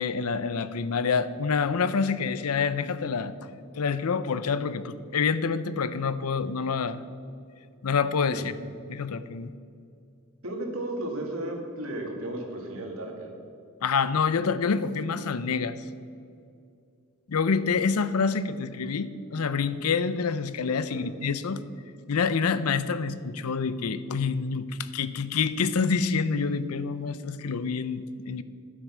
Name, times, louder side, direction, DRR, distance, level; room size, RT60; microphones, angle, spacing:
voice 1, 0.0-3.3 3.8-7.0 7.8-8.5 8.9-9.5 13.8-15.8 17.3-21.6 22.1-28.4, left 5 dB, 90° left, 14 dB, 0.6 m, -27 dB
voice 2, 10.4-13.3 20.9-21.0, right 1 dB, 65° right, 1 dB, 2.0 m, -34 dB
11.5 x 8.1 x 6.2 m, 2.4 s
head